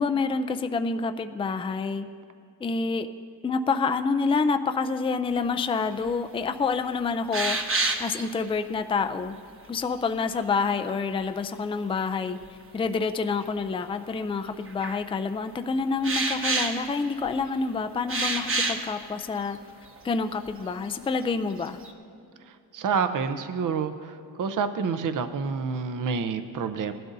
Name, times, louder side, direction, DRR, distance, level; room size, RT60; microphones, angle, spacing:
voice 1, 0.0-2.1 2.6-3.1 3.4-7.6 8.0-9.4 9.7-12.4 12.7-19.6 20.0-21.8, left 4 dB, 15° left, 8 dB, 0.4 m, -27 dB
sound 1, 6.0-6.1 6.6-6.7 7.3-8.3 10.4-11.2 12.4-12.5 13.4-13.5 14.6-15.0 16.0-17.5 18.1-18.9 19.5-19.6 20.0-20.1 20.5-20.9 21.3-21.9, right 3 dB, 35° right, 1.1 m, -28 dB
voice 2, 22.7-26.9, right 5 dB, 50° right, 9 dB, 0.7 m, -28 dB
19.5 x 12.0 x 2.7 m, 2.6 s
cardioid pair, 105°, 40 cm